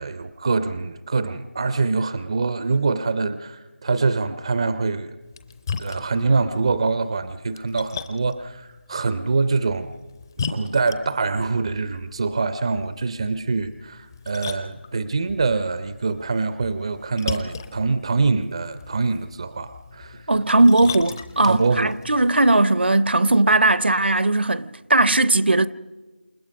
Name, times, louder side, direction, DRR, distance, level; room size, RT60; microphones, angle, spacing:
voice 1, 0.0-5.2 5.8-9.9 10.4-20.2 21.4-21.9, right 4 dB, 30° right, 0.6 m, -24 dB
Splash splatter, 5.2-22.3, left 5 dB, 20° left, 0.7 m, -38 dB
voice 2, 20.3-25.7, right 2 dB, 65° right, 0.7 m, -18 dB
28.0 x 19.5 x 5.3 m
figure-of-eight pair, 165°, 6 cm